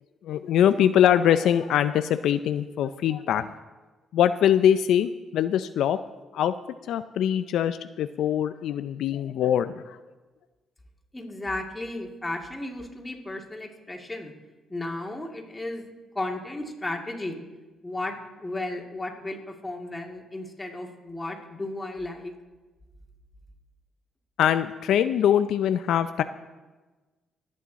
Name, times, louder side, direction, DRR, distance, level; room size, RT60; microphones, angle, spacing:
voice 1, 0.2-3.5 4.1-6.0 6.3-6.5 6.9-10.0 24.4-26.2, left 10 dB, 80° left, 11 dB, 0.4 m, -23 dB
voice 2, 11.1-14.3 14.7-15.9 16.1-17.4 17.8-22.3, left 2 dB, 15° left, 1 dB, 2.5 m, -34 dB
24.5 x 8.7 x 4.1 m, 1.2 s
cardioid pair, 90°, 0 cm